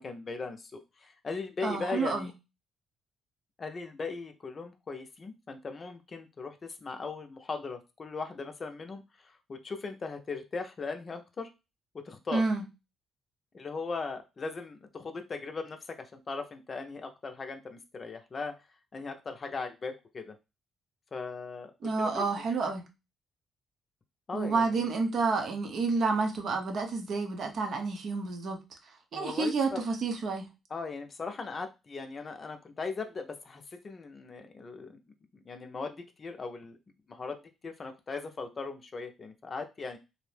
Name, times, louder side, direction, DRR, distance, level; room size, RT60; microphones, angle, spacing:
voice 1, 0.0-2.3 3.6-11.5 12.0-12.4 13.5-18.5 18.9-20.3 21.1-22.4 24.3-24.9 29.1-29.8 30.7-35.0 35.3-36.8 37.1-40.0, left 4 dB, 40° left, 6 dB, 0.5 m, -39 dB
voice 2, 1.6-2.3 12.3-12.6 21.8-22.8 24.3-28.6 29.1-30.5, right 4 dB, 60° right, 3 dB, 0.6 m, -29 dB
2.6 x 2.0 x 3.2 m, 0.26 s
cardioid pair, 90°, 0 cm